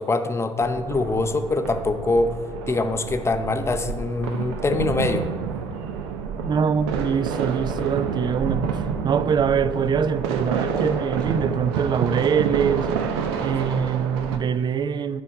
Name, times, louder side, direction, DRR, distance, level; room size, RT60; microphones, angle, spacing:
voice 1, 0.0-2.3 2.7-5.3, left 3 dB, 20° left, 0.7 m, -24 dB
sound 1, 0.6-14.4, right 6 dB, 65° right, 0.7 m, -28 dB
voice 2, 6.4-8.7 9.0-12.9 13.4-15.2, right 7 dB, 30° right, 0.4 m, -23 dB
9.9 x 4.5 x 5.5 m
figure-of-eight pair, 55°, 15 cm